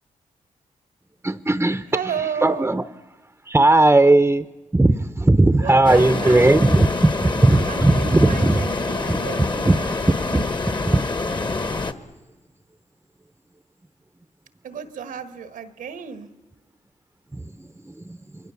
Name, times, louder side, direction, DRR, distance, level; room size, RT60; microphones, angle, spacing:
voice 1, 1.2-2.0 2.4-2.8 3.5-4.5 4.7-8.6 9.1-9.2 9.6-9.8 10.1-10.4 10.8-11.0 17.3-17.4, right 2 dB, 15° right, 11 dB, 0.8 m, -17 dB
voice 2, 1.9-2.8 5.6-6.8 7.7-9.9 14.6-16.3, right 7 dB, 90° right, 11 dB, 1.5 m, -33 dB
sound 1, 5.8-11.9, left 3 dB, 35° left, 1.4 m, -26 dB
27.5 x 22.5 x 7.1 m, 1.2 s
cardioid pair, 65°, 14 cm